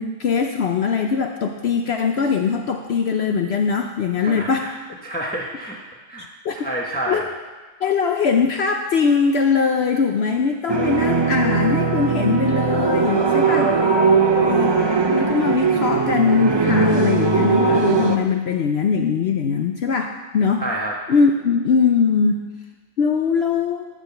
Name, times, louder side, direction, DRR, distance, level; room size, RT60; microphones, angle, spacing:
voice 1, 0.0-4.7 6.4-6.7 7.1-7.2 7.8-13.7 14.3-14.7 15.1-20.6 21.1-22.4 23.0-23.9, left 5 dB, 60° left, 4 dB, 0.8 m, -21 dB
voice 2, 4.2-4.7 5.0-5.8 6.1-6.2 6.6-7.3 13.4-14.1 20.6-20.9, right 1 dB, 10° left, -2 dB, 0.9 m, -28 dB
sound 1, 10.7-18.2, right 5 dB, 30° right, 0.5 m, -19 dB
11.5 x 4.9 x 7.0 m, 1.3 s
omnidirectional pair, 1.4 m